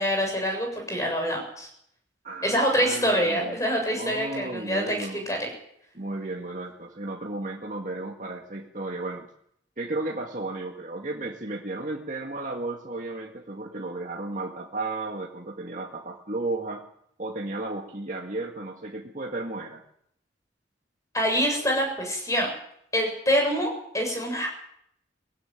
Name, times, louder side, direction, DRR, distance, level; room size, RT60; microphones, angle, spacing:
voice 1, 0.0-1.7 2.4-5.5 21.1-22.5 22.9-24.5, equal, 15° left, 2 dB, 7.1 m, -25 dB
voice 2, 2.8-3.6 3.9-5.3 5.9-9.3 9.8-16.9 17.2-19.8, right 2 dB, 45° right, 0 dB, 1.9 m, -34 dB
20.5 x 16.0 x 9.0 m, 0.72 s
head